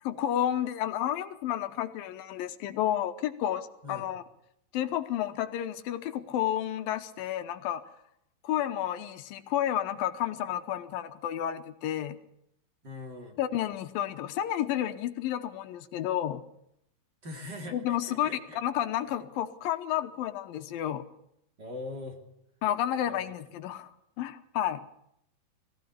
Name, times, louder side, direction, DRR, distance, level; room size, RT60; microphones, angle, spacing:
voice 1, 0.0-4.2 4.7-7.8 8.4-12.2 13.4-16.4 17.7-18.3 18.6-21.0 22.6-23.9 24.2-24.8, left 11 dB, 80° left, 10 dB, 2.7 m, -31 dB
voice 2, 12.8-13.4 17.2-18.6 21.6-22.2 23.0-23.3, left 2 dB, 30° right, 2 dB, 3.3 m, -41 dB
22.0 x 16.0 x 8.5 m, 0.75 s
omnidirectional pair, 4.2 m